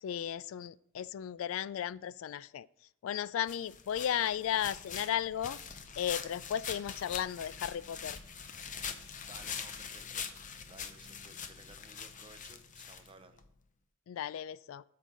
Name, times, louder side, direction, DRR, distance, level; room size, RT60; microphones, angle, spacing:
voice 1, 0.0-2.7 3.0-5.6 6.0-8.2 14.1-14.8, left 10 dB, 90° left, 20 dB, 0.3 m, -35 dB
sound 1, 3.5-13.5, left 7 dB, 40° left, 0.7 m, -43 dB
voice 2, 9.2-10.2 10.7-13.4, right 3 dB, 25° right, 8 dB, 0.8 m, -56 dB
12.5 x 6.7 x 3.9 m, 0.73 s
head